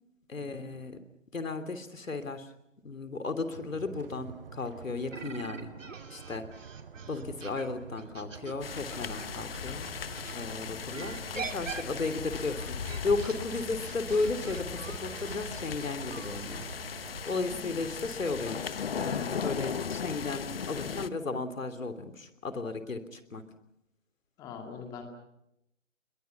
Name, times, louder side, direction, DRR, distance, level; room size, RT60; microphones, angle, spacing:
voice 1, 0.3-1.0 1.3-2.5 2.8-5.7 6.1-6.4 7.1-9.9 10.3-16.7 17.2-23.4, left 3 dB, 80° left, 10 dB, 3.2 m, -34 dB
sound 1, 3.5-17.2, right 6 dB, 45° right, 1.2 m, -47 dB
sound 2, 5.1-10.4 10.9-16.8, right 5 dB, 75° right, 2.7 m, -44 dB
sound 3, 8.6-21.1, left 6 dB, 50° left, 1.0 m, -37 dB
voice 2, 10.6-11.0 17.4-17.9 24.4-25.0, left 5 dB, 10° left, 4 dB, 2.3 m, -44 dB
29.5 x 21.5 x 6.0 m, 0.82 s
hypercardioid pair, 160°, 39 cm